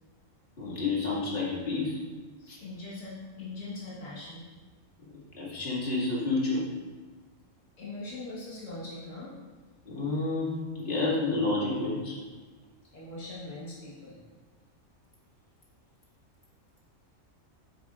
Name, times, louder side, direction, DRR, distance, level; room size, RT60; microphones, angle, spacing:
voice 1, 0.6-2.0 2.5-2.6 5.3-6.7 9.9-10.5 10.8-12.2, left 3 dB, 50° left, -6 dB, 2.5 m, -29 dB
voice 2, 2.4-4.5 7.8-9.4 12.9-14.2, left 2 dB, 75° left, -7 dB, 1.9 m, -41 dB
11.0 x 8.6 x 2.5 m, 1.4 s
omnidirectional pair, 1.3 m